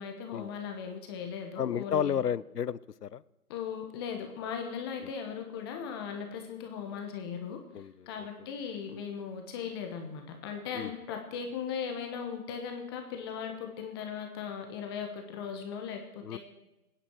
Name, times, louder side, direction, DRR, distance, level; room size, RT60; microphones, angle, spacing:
voice 1, 0.0-2.2 3.5-16.4, left 7 dB, 15° left, 4 dB, 1.2 m, -38 dB
voice 2, 1.6-3.2 7.7-7.9 10.7-10.9 16.2-16.4, left 8 dB, 80° left, 20 dB, 0.8 m, -31 dB
21.5 x 10.0 x 6.3 m, 1.0 s
hypercardioid pair, 155°, 46 cm